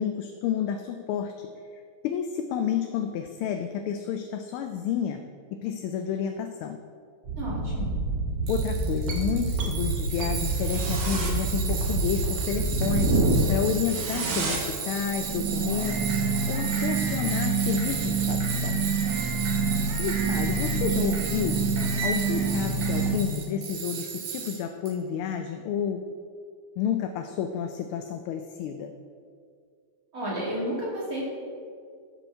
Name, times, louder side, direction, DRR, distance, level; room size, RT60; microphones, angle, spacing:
voice 1, 0.0-5.2 5.5-6.8 8.5-18.8 20.0-21.6 22.0-26.1 26.8-28.9, left 8 dB, 80° left, 6 dB, 1.4 m, -30 dB
sound 1, 7.2-23.2, right 3 dB, 55° right, 1.8 m, -27 dB
voice 2, 7.4-8.0 30.1-31.2, equal, 40° right, -6 dB, 2.7 m, -31 dB
Tools, 8.5-24.9, right 7 dB, 85° right, 1.9 m, -35 dB
11.5 x 6.2 x 4.6 m, 2.2 s
omnidirectional pair, 2.4 m